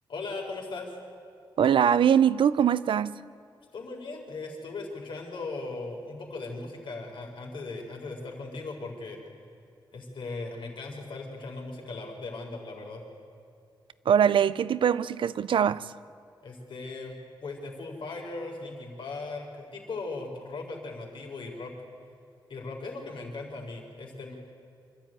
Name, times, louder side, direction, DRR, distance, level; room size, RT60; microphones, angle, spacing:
voice 1, 0.1-0.9 3.7-9.2 9.9-13.0 16.4-17.1 17.4-21.7 22.5-24.4, left 3 dB, 75° left, 4.1 m, -38 dB
voice 2, 1.6-3.2 14.1-15.9, right 8 dB, 85° right, 0.5 m, -22 dB
26.0 x 12.5 x 9.1 m
wide cardioid pair, 135°, 8 cm